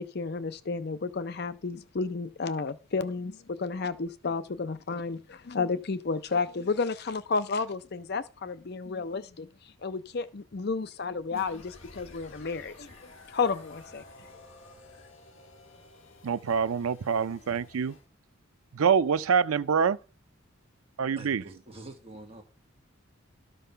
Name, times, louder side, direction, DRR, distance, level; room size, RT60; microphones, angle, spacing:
voice 1, 0.0-9.5 9.8-12.9 13.3-14.0, left 4 dB, 50° left, 0.5 m, -32 dB
sound 1, 11.3-18.1, left 2 dB, 65° left, 1.8 m, -52 dB
voice 2, 16.2-18.0 18.7-20.0 21.0-21.4, right 6 dB, 85° right, 0.5 m, -25 dB
voice 3, 21.2-22.4, right 2 dB, 25° right, 1.6 m, -45 dB
12.5 x 5.4 x 5.6 m
head